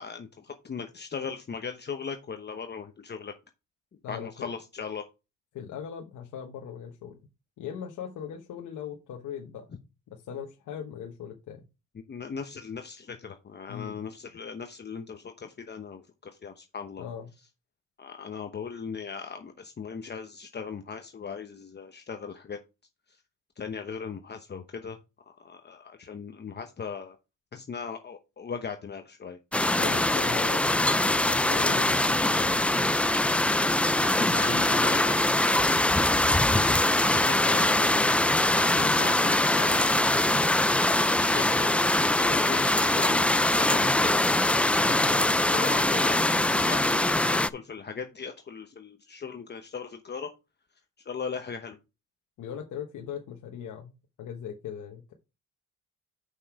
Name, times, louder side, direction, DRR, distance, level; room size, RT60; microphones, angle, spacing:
voice 1, 0.0-3.3 4.1-5.0 12.1-17.1 18.0-22.6 23.1-23.2 23.6-25.0 25.4-27.2 27.5-29.4 34.2-35.2 35.5-40.0 40.9-44.2 44.8-50.3 51.0-51.8, left 6 dB, 35° left, 6 dB, 0.9 m, -38 dB
voice 2, 4.0-4.5 5.5-7.2 7.6-9.7 10.1-11.6 13.7-14.0 17.0-17.3 29.8-32.6 44.8-45.4 52.4-53.9 54.2-55.1, left 8 dB, 75° left, 2 dB, 1.2 m, -39 dB
sound 1, 29.5-47.5, left 1 dB, 5° left, 0.3 m, -23 dB
6.5 x 5.7 x 4.7 m, 0.28 s
cardioid pair, 90°, 30 cm